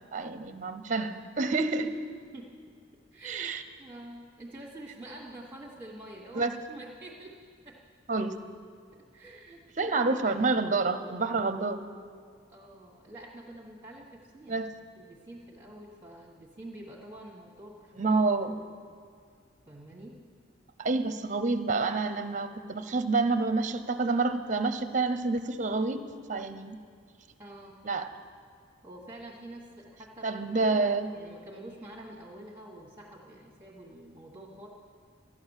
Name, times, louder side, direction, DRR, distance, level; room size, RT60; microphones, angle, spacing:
voice 1, 0.1-1.9 3.2-3.6 6.3-6.6 8.1-8.3 9.8-11.9 14.5-14.7 18.0-18.5 20.8-26.0 26.3-26.8 27.8-28.1 30.2-31.1, right 3 dB, 40° right, 10 dB, 0.7 m, -28 dB
voice 2, 3.1-7.3 7.6-7.7 8.2-8.3 9.1-10.2 12.5-14.1 14.3-18.7 19.7-20.1 27.4-27.7 28.8-34.7, right 1 dB, 15° right, -5 dB, 1.5 m, -47 dB
13.5 x 10.0 x 7.3 m, 2.1 s
head